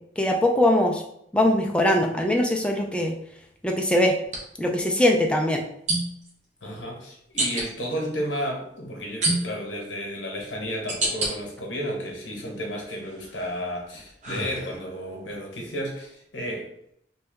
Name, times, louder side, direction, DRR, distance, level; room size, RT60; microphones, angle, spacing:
voice 1, 0.2-1.0 1.3-3.1 3.6-4.1 4.6-5.6, left 1 dB, 5° left, 2 dB, 0.3 m, -21 dB
sound 1, 4.2-4.4 5.9-6.3 7.4-7.7 9.2-9.8 10.4-11.3 11.9-12.5 13.0-15.0, right 2 dB, 40° right, 0.7 m, -29 dB
voice 2, 6.6-16.7, equal, 80° left, 0 dB, 0.9 m, -32 dB
2.9 x 2.2 x 3.3 m, 0.75 s
head